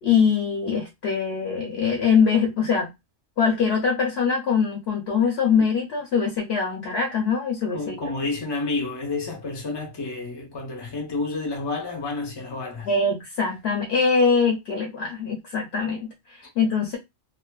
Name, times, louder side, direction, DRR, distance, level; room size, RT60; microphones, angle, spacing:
voice 1, 0.0-2.9 3.4-8.0 12.8-17.0, left 5 dB, 60° left, 0.9 m, -23 dB
voice 2, 7.7-12.9, left 3 dB, 30° left, 0.5 m, -30 dB
2.5 x 2.4 x 2.2 m
omnidirectional pair, 1.4 m